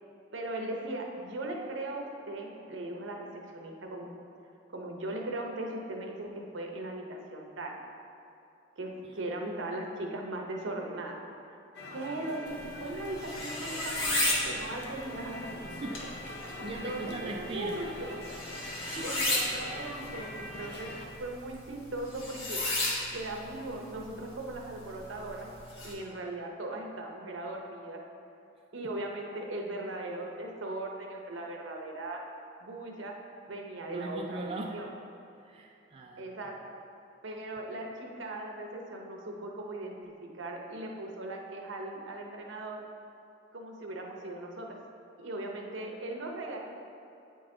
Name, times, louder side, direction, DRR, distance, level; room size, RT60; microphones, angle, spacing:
voice 1, 0.3-4.1 4.7-7.8 8.8-11.2 11.9-15.5 16.6-18.2 19.0-22.6 23.1-25.5 25.8-28.0 28.7-32.2 32.6-33.2 33.5-34.9 36.2-36.6 37.2-42.8 43.5-44.8 45.2-46.6, right 2 dB, 70° right, 1 dB, 0.8 m, -38 dB
sound 1, 11.7-21.1, left 1 dB, 55° left, 0.7 m, -43 dB
sound 2, 12.5-25.9, left 1 dB, 85° left, 1.3 m, -35 dB
voice 2, 16.6-17.8 18.6-19.1 28.8-28.9 33.9-34.9 35.3-36.3, right 2 dB, 30° right, 0 dB, 0.3 m, -40 dB
8.6 x 3.9 x 3.8 m, 2.7 s
head